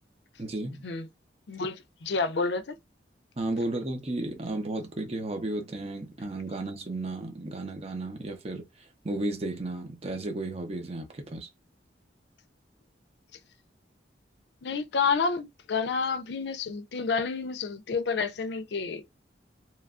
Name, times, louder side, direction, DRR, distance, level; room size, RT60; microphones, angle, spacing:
voice 1, 0.4-0.9 3.4-11.5, right 2 dB, 35° right, 0.6 m, -34 dB
voice 2, 1.5-2.8 14.6-19.2, left 5 dB, 70° left, 0.4 m, -29 dB
3.0 x 2.3 x 2.4 m
head